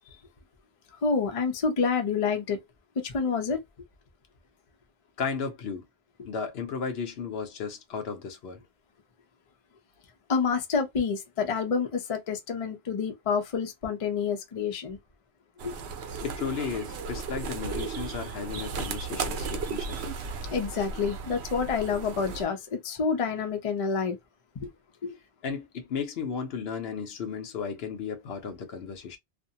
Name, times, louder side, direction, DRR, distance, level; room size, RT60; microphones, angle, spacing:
voice 1, 1.0-2.6 3.0-3.6 10.3-15.0 15.6-15.7 20.5-24.2 24.6-24.7 25.0-25.2, left 5 dB, 40° left, 0.5 m, -28 dB
voice 2, 5.2-5.8 6.2-8.6 16.2-20.2 25.4-29.2, left 6 dB, 75° left, 0.9 m, -34 dB
sound 1, 15.6-22.4, right 5 dB, 85° right, 0.9 m, -35 dB
2.5 x 2.0 x 2.7 m
omnidirectional pair, 1.1 m